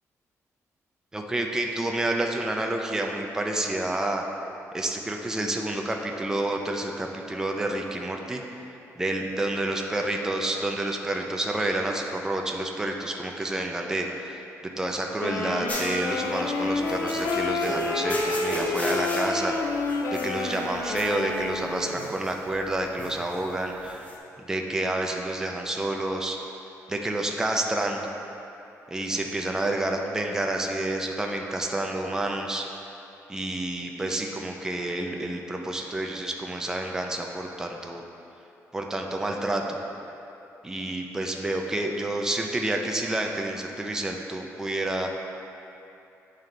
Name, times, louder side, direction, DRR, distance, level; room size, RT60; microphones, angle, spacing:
voice 1, 1.1-4.2 4.7-8.4 9.0-19.5 20.1-24.1 24.4-26.4 26.9-28.1 28.9-32.9 33.3-38.0 38.7-39.8 40.6-45.1, right 1 dB, 10° right, 1 dB, 0.4 m, -29 dB
Wind instrument woodwind instrument, 15.2-22.1, left 3 dB, 60° left, 0.5 m, -29 dB
sound 1, 15.7-24.2, left 1 dB, 25° left, 0.8 m, -38 dB
8.8 x 3.2 x 3.8 m, 2.8 s
cardioid pair, 130°, 6 cm